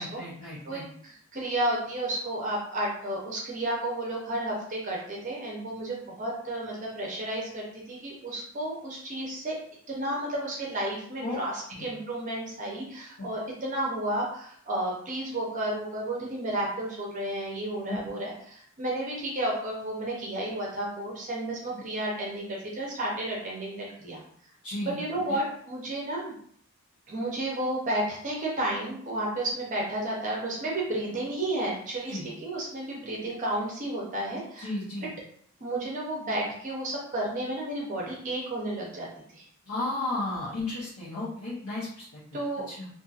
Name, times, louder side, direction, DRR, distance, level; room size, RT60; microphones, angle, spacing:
voice 1, 0.0-0.8 11.2-11.4 11.7-11.9 13.2-13.3 17.9-18.0 21.7-21.8 24.6-25.0 25.3-25.4 32.1-32.2 34.6-35.1 39.7-42.4 42.7-42.9, left 2 dB, 85° left, -10 dB, 0.9 m, -34 dB
voice 2, 0.6-9.6 9.9-11.5 11.8-24.2 24.8-26.3 27.1-34.7 35.6-39.1 39.3-39.4 42.3-42.7, right 1 dB, 35° right, -3 dB, 0.6 m, -32 dB
2.7 x 2.5 x 2.4 m, 0.62 s
head